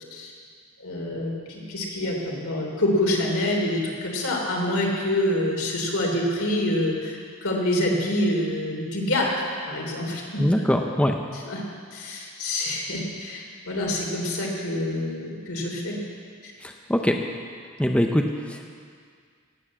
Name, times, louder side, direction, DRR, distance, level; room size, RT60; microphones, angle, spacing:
voice 1, 0.8-9.3 9.7-10.7 11.4-11.6 11.9-16.0 16.4-16.5, left 1 dB, 70° left, -1 dB, 3.3 m, -26 dB
voice 2, 10.4-11.2 16.6-17.2 17.8-18.7, equal, 5° left, 3 dB, 0.6 m, -23 dB
18.0 x 8.0 x 7.5 m, 2.1 s
head